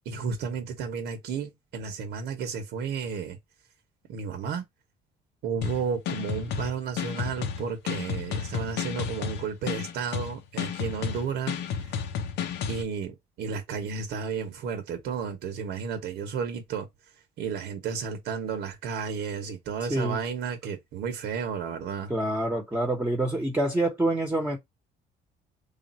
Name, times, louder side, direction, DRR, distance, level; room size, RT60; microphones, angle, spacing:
voice 1, 0.0-3.4 4.1-4.6 5.4-12.0 12.7-16.9 17.4-22.1, right 6 dB, 80° right, 1.0 m, -32 dB
sound 1, 5.6-12.8, left 7 dB, 85° left, 0.9 m, -32 dB
voice 2, 19.9-20.2 22.1-24.6, right 1 dB, 10° right, 1.1 m, -26 dB
3.5 x 2.5 x 4.2 m
cardioid pair, 110°, 17 cm